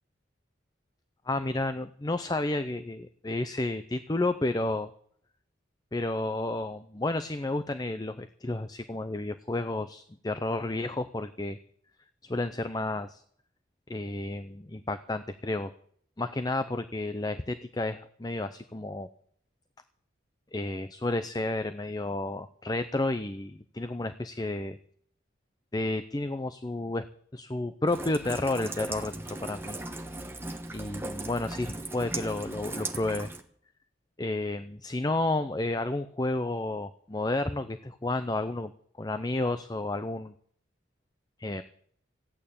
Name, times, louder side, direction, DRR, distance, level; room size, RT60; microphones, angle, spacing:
voice 1, 1.3-4.9 5.9-11.6 12.2-13.2 13.9-15.7 16.2-19.1 20.5-24.8 25.7-27.1 27.3-29.1 29.4-29.8 30.7-33.3 34.2-38.7 39.0-40.3 41.4-41.6, left 2 dB, 20° left, 10 dB, 0.5 m, -31 dB
Rain, 27.9-33.4, right 2 dB, 10° right, 1.1 m, -38 dB
15.0 x 9.0 x 8.5 m, 0.63 s
head